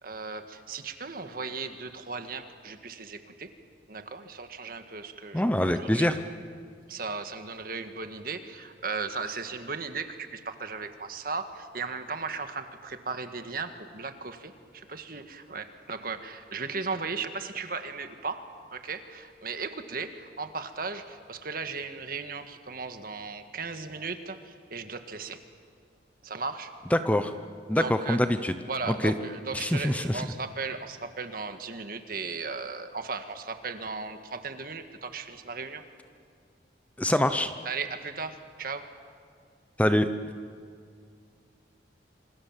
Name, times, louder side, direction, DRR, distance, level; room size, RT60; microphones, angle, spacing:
voice 1, 0.0-3.5 3.9-5.5 5.8-6.1 6.9-18.4 18.7-25.4 26.2-26.7 27.7-28.2 28.7-35.8 37.6-38.9, right 4 dB, 50° right, 8 dB, 1.7 m, -36 dB
voice 2, 5.3-6.2 26.9-27.3 27.7-28.5 28.9-29.1 29.5-30.3 37.0-37.5 39.8-40.1, left 1 dB, 10° left, 9 dB, 0.8 m, -24 dB
27.0 x 26.5 x 7.4 m, 2.2 s
head